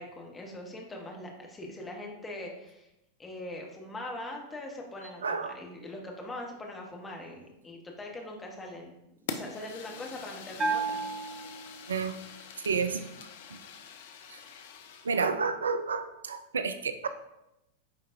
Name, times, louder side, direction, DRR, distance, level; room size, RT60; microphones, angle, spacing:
voice 1, 0.0-2.9 3.2-8.9 9.2-11.0, left 1 dB, 15° left, 0 dB, 1.3 m, -42 dB
voice 2, 5.2-5.6 11.9-12.2 12.6-13.1 14.3-14.4 15.0-17.1, right 5 dB, 70° right, 10 dB, 0.4 m, -30 dB
Fire, 9.3-15.2, left 6 dB, 55° left, 0.6 m, -44 dB
Bell, 10.6-12.2, right 4 dB, 20° right, 1.1 m, -33 dB
9.2 x 3.9 x 2.6 m, 0.89 s
figure-of-eight pair, 90°, 0 cm